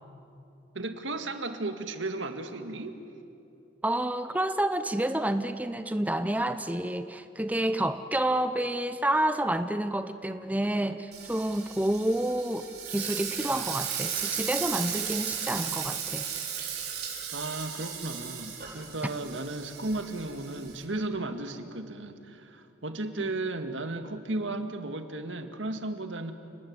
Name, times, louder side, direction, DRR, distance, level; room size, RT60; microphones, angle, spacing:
voice 1, 0.7-2.9 17.3-26.3, right 2 dB, 85° right, 7 dB, 2.0 m, -34 dB
voice 2, 3.8-16.3 23.2-23.3, right 1 dB, 10° right, 10 dB, 0.7 m, -29 dB
Frying (food), 11.1-20.8, right 8 dB, 55° right, 5.3 m, -35 dB
29.5 x 19.5 x 9.6 m, 2.7 s
head